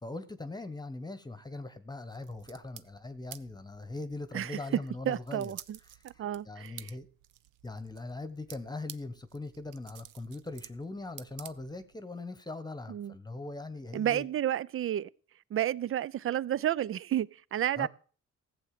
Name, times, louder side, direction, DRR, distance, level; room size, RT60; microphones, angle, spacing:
voice 1, 0.0-5.5 5.9-7.1 7.6-14.3 17.8-17.9, left 2 dB, 15° left, 1.1 m, -41 dB
sound 1, 2.1-12.0, right 13 dB, 85° right, 0.7 m, -52 dB
voice 2, 5.1-5.8 6.0-6.9 12.9-13.1 13.9-15.1 15.5-17.9, right 11 dB, 45° right, 0.5 m, -31 dB
15.0 x 7.8 x 6.6 m
cardioid pair, 90°, 30 cm